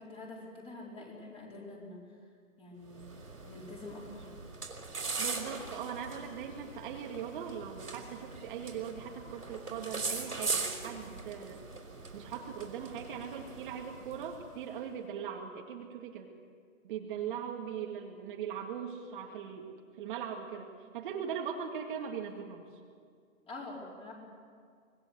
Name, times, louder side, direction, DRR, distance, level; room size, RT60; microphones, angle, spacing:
voice 1, 0.0-2.0 2.6-3.1 3.4-4.2 23.5-24.1, left 2 dB, 15° left, -3 dB, 4.6 m, -46 dB
sound 1, 2.9-14.7, right 4 dB, 90° right, 4.8 m, -40 dB
voice 2, 5.2-11.6 12.1-16.3 16.8-19.7 20.0-22.7, right 8 dB, 35° right, 1 dB, 2.1 m, -40 dB
25.5 x 20.0 x 8.3 m, 2.1 s
hypercardioid pair, 145°, 43 cm